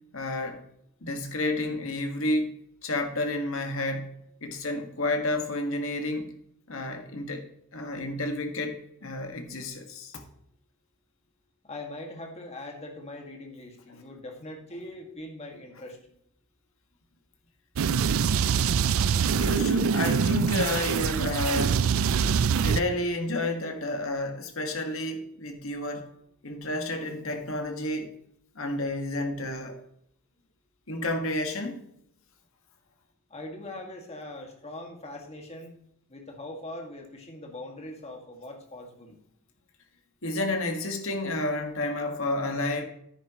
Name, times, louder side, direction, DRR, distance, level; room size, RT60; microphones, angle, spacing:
voice 1, 0.1-0.6 1.0-2.5 2.8-4.1 4.4-6.3 6.7-7.4 7.7-10.2 19.4-21.8 22.6-26.1 26.4-28.1 28.5-29.8 30.9-31.8 40.2-42.8, left 2 dB, 65° left, 1.7 m, -30 dB
voice 2, 11.6-16.0 33.3-35.7 36.1-39.2, left 1 dB, 30° left, 1.9 m, -41 dB
sound 1, 17.8-22.8, right 6 dB, 65° right, 0.4 m, -24 dB
10.0 x 10.0 x 3.0 m
head